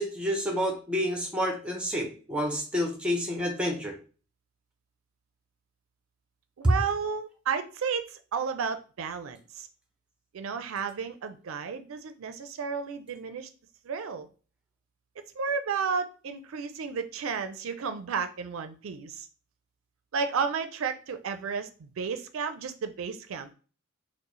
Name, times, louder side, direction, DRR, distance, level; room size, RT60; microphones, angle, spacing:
voice 1, 0.0-3.9, equal, 5° right, 2 dB, 0.7 m, -29 dB
voice 2, 6.6-9.7 10.3-13.5 13.8-14.3 15.4-19.3 20.1-23.5, right 6 dB, 80° right, 9 dB, 0.4 m, -32 dB
4.6 x 2.0 x 3.0 m, 0.37 s
head